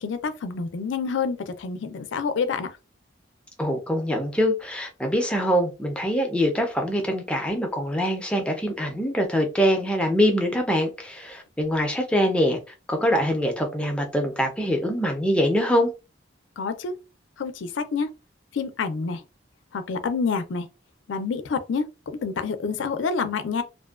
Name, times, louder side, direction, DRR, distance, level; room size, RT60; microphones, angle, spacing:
voice 1, 0.0-2.7 16.6-16.9 17.4-18.1 18.5-19.2 19.7-20.7 21.1-23.6, left 5 dB, 80° left, 0.4 m, -28 dB
voice 2, 3.6-12.6 12.9-15.9, equal, 5° left, 0.5 m, -24 dB
2.5 x 2.2 x 2.3 m
head